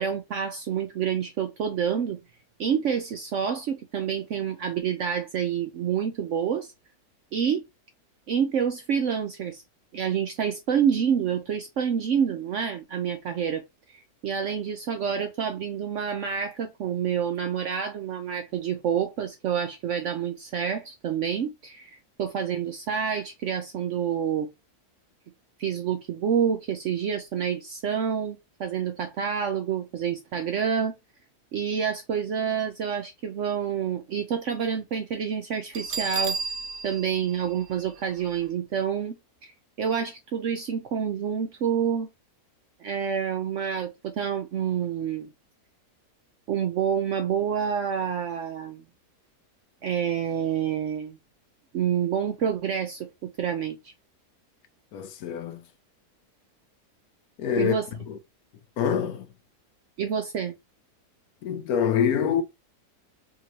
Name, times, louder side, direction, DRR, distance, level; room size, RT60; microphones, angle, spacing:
voice 1, 0.0-2.2 2.6-6.7 7.3-7.6 8.3-9.6 9.9-13.6 14.2-24.5 25.6-30.9 31.5-36.4 36.8-39.1 39.4-39.5 39.8-42.1 42.8-45.3 46.5-48.8 49.8-51.2 51.7-53.9 57.6-57.9 60.0-60.5, right 8 dB, 70° right, 0.7 m, -28 dB
Bell, 35.7-38.4, right 5 dB, 90° right, 1.3 m, -33 dB
voice 2, 54.9-55.6 57.4-57.7 58.1-58.2 58.8-59.3 61.4-62.4, left 8 dB, 75° left, 1.0 m, -25 dB
3.7 x 3.0 x 2.7 m
omnidirectional pair, 1.7 m